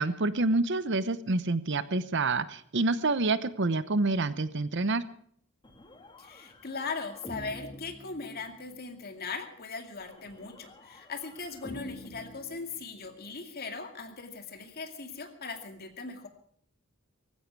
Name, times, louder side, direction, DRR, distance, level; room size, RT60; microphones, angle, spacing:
voice 1, 0.0-5.0, right 3 dB, 55° right, 15 dB, 0.8 m, -27 dB
sound 1, 5.6-8.9 10.0-13.3, left 1 dB, 20° left, 2.0 m, -48 dB
voice 2, 6.2-16.3, left 4 dB, 45° left, 6 dB, 2.4 m, -39 dB
18.5 x 16.0 x 4.7 m, 0.62 s
head